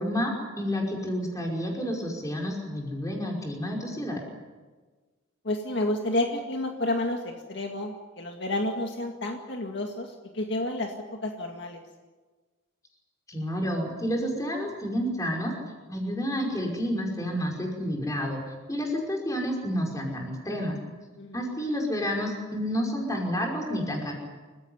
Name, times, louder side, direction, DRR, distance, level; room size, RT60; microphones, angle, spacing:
voice 1, 0.0-4.2 13.3-15.5 15.9-18.4 18.7-20.8 21.3-24.1, equal, 15° left, 1 dB, 5.4 m, -30 dB
voice 2, 5.4-10.9 11.2-11.8 21.2-21.5, left 1 dB, 55° left, 2 dB, 2.1 m, -30 dB
29.0 x 16.0 x 9.7 m, 1.3 s
head